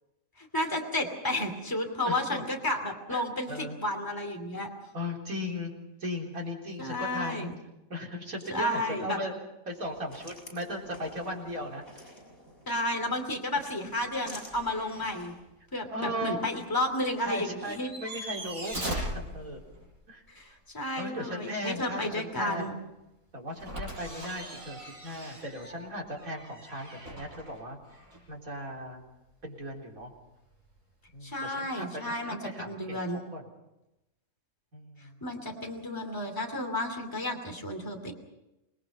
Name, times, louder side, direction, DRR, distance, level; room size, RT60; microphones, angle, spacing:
voice 1, 0.4-4.7 6.8-7.5 8.5-9.2 12.7-15.4 15.7-17.9 20.3-22.8 31.2-33.2 35.2-38.1, left 1 dB, 15° left, 3 dB, 2.8 m, -32 dB
voice 2, 2.0-2.4 3.1-3.8 4.9-5.7 6.0-7.5 7.9-9.4 9.7-11.8 15.9-16.6 17.2-19.6 20.1-20.2 20.5-20.6 21.0-22.8 23.3-28.0 28.3-29.0 29.4-30.1 31.1-33.0 33.3-33.4 34.7-35.2, equal, 90° right, -1 dB, 4.3 m, -37 dB
sound 1, 9.7-15.4, left 1 dB, 45° left, 5.8 m, -50 dB
sound 2, 14.5-15.1 15.5-15.6 17.6-20.0 23.5-28.3 30.4-30.5, right 1 dB, 70° right, 7.9 m, -40 dB
26.5 x 20.0 x 5.5 m, 0.94 s
omnidirectional pair, 1.5 m